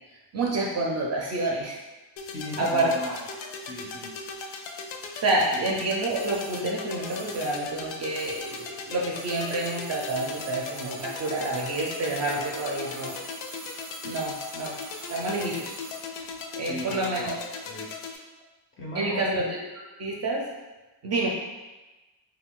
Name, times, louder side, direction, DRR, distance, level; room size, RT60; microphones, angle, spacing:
voice 1, 0.3-1.8 2.6-2.9 5.2-13.1 14.0-14.7 15.1-15.7 16.6-17.3 18.9-20.4 21.0-21.3, right 2 dB, 35° right, -2 dB, 0.4 m, -28 dB
sound 1, 2.2-18.2, left 4 dB, 80° left, 0.5 m, -38 dB
voice 2, 2.3-3.2 3.7-4.1 16.7-17.9 18.8-19.3, left 1 dB, 30° left, -3 dB, 0.4 m, -37 dB
sound 2, 6.1-8.8 9.1-16.1 16.4-16.5, right 4 dB, 90° right, 0.6 m, -45 dB
2.4 x 2.2 x 3.6 m, 1.2 s
cardioid pair, 140°, 45 cm